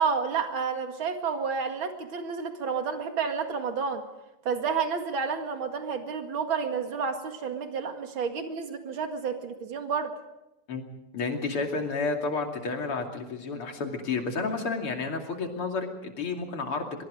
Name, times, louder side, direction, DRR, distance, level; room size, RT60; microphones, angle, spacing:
voice 1, 0.0-4.0 4.5-10.1, right 5 dB, 65° right, 5 dB, 2.8 m, -30 dB
voice 2, 11.1-17.0, left 4 dB, 75° left, 3 dB, 3.5 m, -31 dB
23.0 x 23.0 x 5.0 m, 0.93 s
omnidirectional pair, 2.4 m